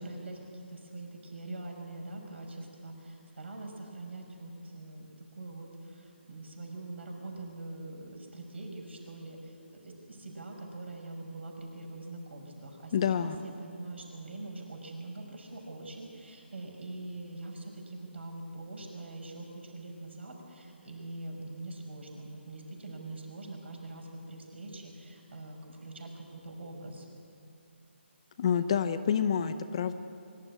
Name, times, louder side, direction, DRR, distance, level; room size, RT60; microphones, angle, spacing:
voice 1, 0.0-5.1 5.4-27.1, right 2 dB, 65° right, 2 dB, 6.0 m, -43 dB
voice 2, 12.9-13.4 28.4-29.9, left 8 dB, 30° left, 11 dB, 0.7 m, -28 dB
24.0 x 13.5 x 9.9 m, 2.5 s
hypercardioid pair, 165°, 7 cm